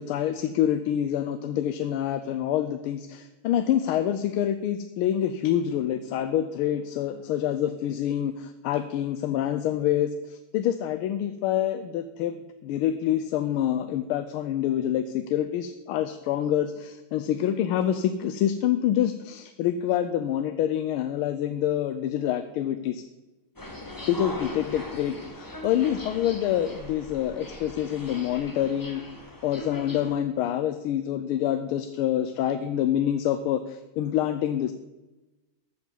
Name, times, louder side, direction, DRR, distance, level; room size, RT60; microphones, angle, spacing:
voice 1, 0.0-12.4 12.6-23.0 24.1-29.0 29.4-34.7, left 10 dB, 80° left, 10 dB, 1.5 m, -26 dB
sound 1, 23.6-30.2, left 1 dB, 15° left, 0.8 m, -40 dB
14.0 x 5.3 x 7.2 m, 1.1 s
omnidirectional pair, 2.4 m